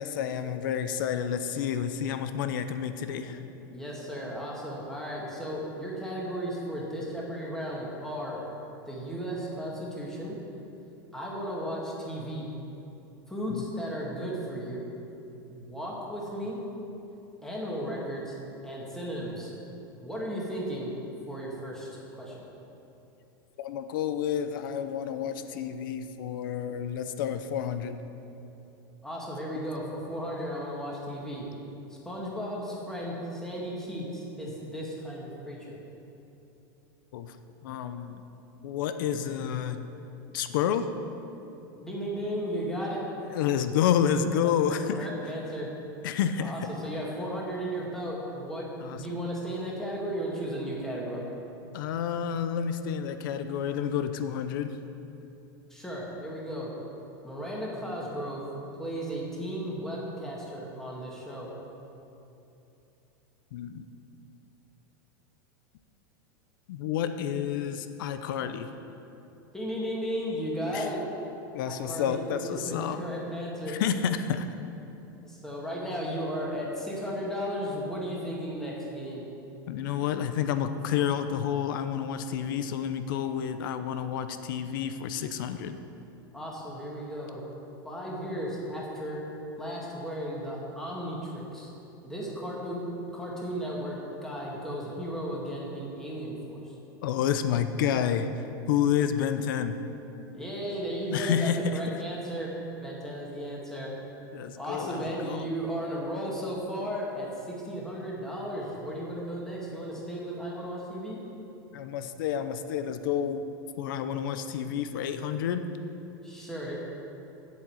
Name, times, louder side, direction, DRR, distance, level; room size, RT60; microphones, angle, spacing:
voice 1, 0.0-3.4 13.5-13.6 23.6-28.0 37.1-37.4 37.6-38.2 38.6-39.9 40.3-40.9 43.3-45.1 46.0-46.5 48.8-49.2 51.7-54.8 63.5-63.8 66.7-68.7 70.7-70.9 71.5-73.0 73.7-74.5 79.7-85.8 97.0-98.3 98.7-99.8 101.1-102.0 104.3-105.5 111.7-113.5 113.8-115.7, left 8 dB, 70° left, 10 dB, 0.7 m, -29 dB
voice 2, 3.7-8.4 8.9-10.4 11.1-12.5 13.3-14.8 15.5-16.6 17.4-18.3 18.6-19.5 20.0-20.9 21.3-22.4 29.0-31.5 32.0-35.8 41.8-43.0 44.4-45.7 46.4-48.7 48.9-51.2 55.7-56.7 57.2-58.5 58.8-61.5 69.5-71.0 71.6-73.8 75.2-79.2 86.3-87.4 87.8-89.2 89.6-91.7 92.0-96.7 100.3-102.5 102.8-103.9 104.6-111.2 116.2-116.8, equal, 5° left, -4 dB, 2.0 m, -35 dB
7.9 x 7.6 x 7.9 m, 2.9 s
supercardioid pair, 150°, 11 cm